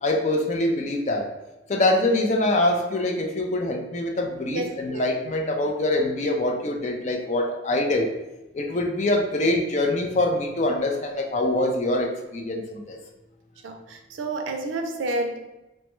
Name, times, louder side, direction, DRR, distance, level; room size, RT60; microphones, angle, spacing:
voice 1, 0.0-1.3 1.7-8.1 8.5-13.0, left 1 dB, 40° left, 2 dB, 0.4 m, -24 dB
voice 2, 4.5-5.0 8.7-8.8 13.6-15.5, right 2 dB, 85° right, 4 dB, 0.4 m, -30 dB
3.1 x 2.2 x 3.0 m, 1.0 s
head